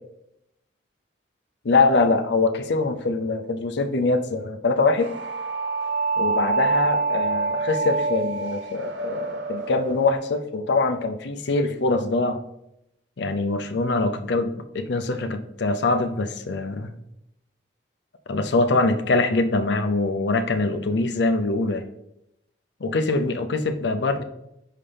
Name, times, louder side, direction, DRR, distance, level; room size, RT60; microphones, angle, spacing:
voice 1, 1.6-5.1 6.2-12.4 13.2-16.9 18.3-21.8 22.8-24.2, left 3 dB, 65° left, 7 dB, 0.6 m, -23 dB
sound 1, 5.0-10.1, right 4 dB, 75° right, 0.7 m, -26 dB
5.5 x 5.5 x 3.4 m, 0.82 s
head